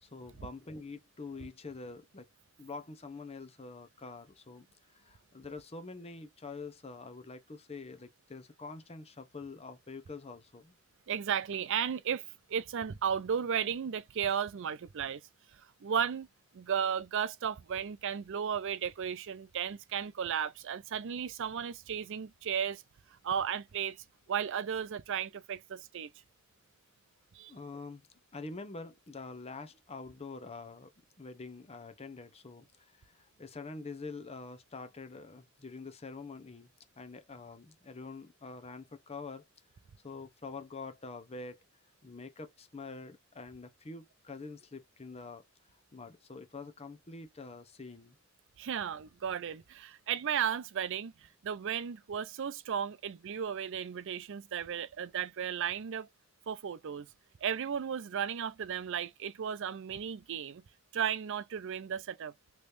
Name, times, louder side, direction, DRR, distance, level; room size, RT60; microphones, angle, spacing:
voice 1, 0.0-2.3 2.6-10.7 27.5-28.1 28.3-36.7 37.0-39.5 40.0-41.6 42.0-45.4 45.9-48.2, left 3 dB, 30° left, 0.7 m, -46 dB
voice 2, 11.1-15.2 15.5-16.3 16.5-22.8 23.1-26.1 27.3-27.5 48.6-56.1 56.5-57.1 57.4-60.6 60.9-62.3, right 8 dB, 60° right, 0.4 m, -35 dB
3.3 x 3.1 x 2.6 m
head